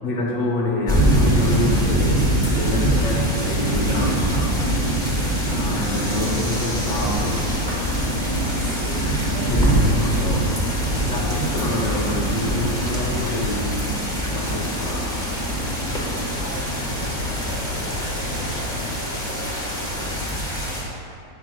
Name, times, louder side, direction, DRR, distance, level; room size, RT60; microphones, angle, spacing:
voice 1, 0.0-2.2 2.6-4.6 5.5-7.4 9.0-9.2 9.5-10.5 10.9-14.0 14.3-15.2 18.7-18.8, left 1 dB, 55° left, -1 dB, 0.9 m, -27 dB
sound 1, 0.9-20.8, right 1 dB, 5° left, 0.8 m, -23 dB
sound 2, 5.7-8.3, left 1 dB, 25° left, 1.1 m, -38 dB
sound 3, 6.0-20.3, left 3 dB, 80° left, 0.7 m, -34 dB
voice 2, 8.4-9.1 9.3-10.0 16.3-20.2, right 2 dB, 70° right, -5 dB, 1.2 m, -40 dB
9.1 x 6.1 x 2.2 m, 2.6 s
omnidirectional pair, 2.0 m